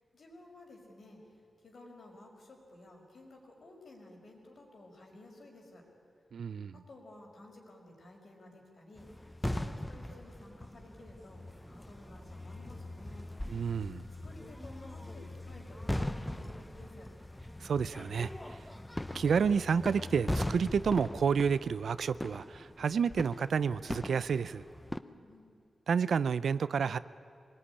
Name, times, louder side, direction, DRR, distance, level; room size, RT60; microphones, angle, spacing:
voice 1, 0.1-5.9 6.7-13.3 14.2-17.1 25.0-25.5, left 2 dB, 60° left, 1 dB, 5.3 m, -54 dB
voice 2, 6.3-6.8 13.5-14.0 17.6-18.6 19.1-24.6 25.9-27.0, right 6 dB, 80° right, 16 dB, 0.6 m, -30 dB
sound 1, 9.0-25.0, left 1 dB, 10° left, 0.9 m, -40 dB
24.0 x 20.0 x 9.9 m, 2.3 s
wide cardioid pair, 110°, 0 cm